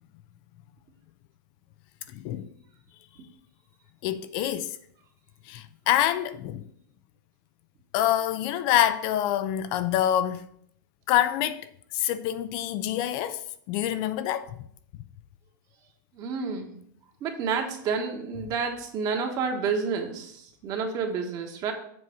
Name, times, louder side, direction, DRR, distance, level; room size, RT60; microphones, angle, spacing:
voice 1, 2.1-2.5 4.0-4.8 5.5-6.6 7.9-10.5 11.1-14.6, left 12 dB, 45° left, 0.4 m, -26 dB
voice 2, 16.2-16.7 17.2-21.7, right 5 dB, 35° right, 1.4 m, -29 dB
7.6 x 4.0 x 5.9 m
hypercardioid pair, 130°, 11 cm